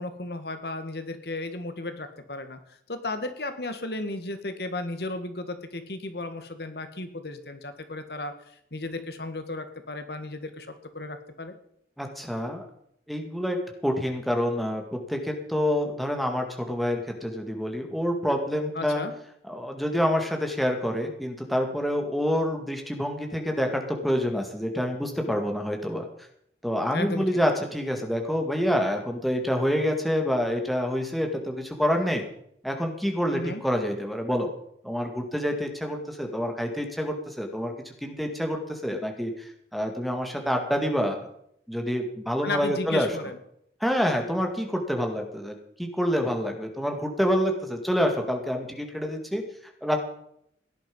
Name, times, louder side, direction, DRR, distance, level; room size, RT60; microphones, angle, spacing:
voice 1, 0.0-2.6 2.9-8.3 8.7-10.7 10.9-11.5 18.8-19.1 26.9-27.3 33.3-33.6 42.4-43.4, left 2 dB, 70° left, 9 dB, 1.7 m, -34 dB
voice 2, 12.0-12.7 13.1-19.0 19.5-26.1 26.6-32.2 32.6-34.5 34.8-41.3 41.7-43.1 43.8-49.4 49.8-50.0, equal, ahead, 3 dB, 2.2 m, -27 dB
17.0 x 11.0 x 5.4 m, 0.71 s
head